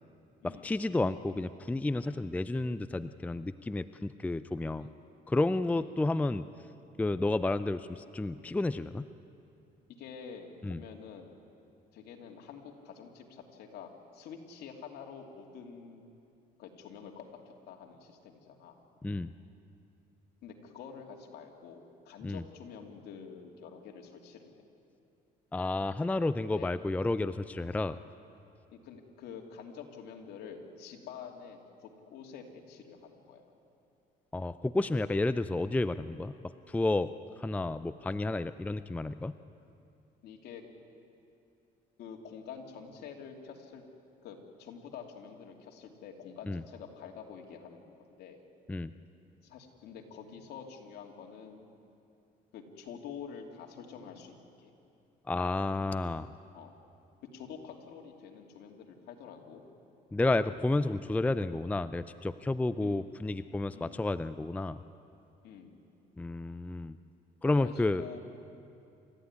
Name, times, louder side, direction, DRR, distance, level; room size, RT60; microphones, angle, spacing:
voice 1, 0.4-4.9 5.3-6.5 7.0-9.1 10.6-10.8 19.0-19.3 22.2-22.4 25.5-28.0 34.3-36.3 36.7-37.1 37.4-39.3 46.5-46.6 48.7-48.9 55.3-56.3 60.1-64.8 66.2-67.0 67.4-68.0, left 2 dB, 10° left, 13 dB, 0.5 m, -31 dB
voice 2, 10.0-11.3 11.9-16.1 16.6-18.8 20.4-24.5 26.5-26.7 28.8-33.5 40.2-40.6 42.0-43.8 44.2-48.4 49.4-51.7 52.5-54.7 56.5-56.8 57.3-59.6 62.8-63.1 63.7-64.1 65.4-65.8 67.6-68.2, left 6 dB, 75° left, 2 dB, 2.9 m, -47 dB
28.5 x 14.0 x 9.8 m, 2.6 s
cardioid pair, 110°, 17 cm